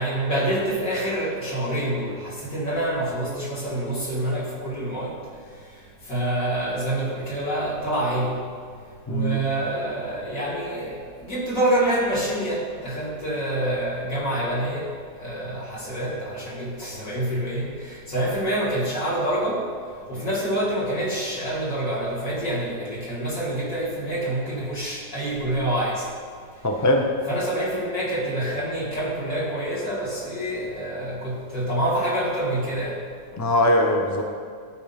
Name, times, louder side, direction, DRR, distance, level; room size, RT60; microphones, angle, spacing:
voice 1, 0.0-5.2 6.1-8.4 9.1-14.9 15.2-19.6 20.1-26.1 27.3-33.0, right 1 dB, 50° left, -6 dB, 3.1 m, -26 dB
voice 2, 9.1-9.4 26.6-27.1 33.4-34.2, left 1 dB, 25° left, 2 dB, 0.3 m, -21 dB
13.0 x 4.6 x 5.7 m, 2.1 s
omnidirectional pair, 1.8 m